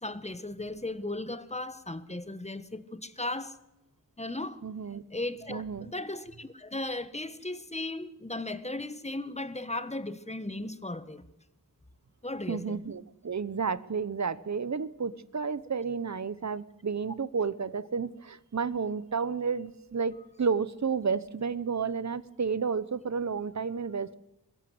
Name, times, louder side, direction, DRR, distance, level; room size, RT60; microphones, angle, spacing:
voice 1, 0.0-3.6 4.2-4.6 5.1-11.2 12.2-12.8, left 2 dB, 20° left, 1.4 m, -36 dB
voice 2, 4.6-5.0 5.5-5.9 12.5-24.2, right 5 dB, 50° right, 0.9 m, -31 dB
21.5 x 15.5 x 7.9 m
wide cardioid pair, 55°, 35 cm